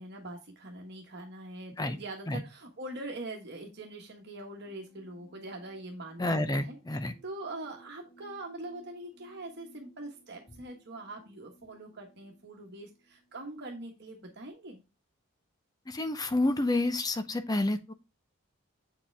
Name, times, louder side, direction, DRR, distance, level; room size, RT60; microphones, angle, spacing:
voice 1, 0.0-6.7 7.0-14.8, right 2 dB, 50° right, 1.3 m, -43 dB
sound 1, 4.6-14.5, right 2 dB, 40° left, 3.1 m, -61 dB
voice 2, 6.2-7.1 15.9-17.9, left 2 dB, 15° left, 0.6 m, -29 dB
7.3 x 5.0 x 3.3 m
head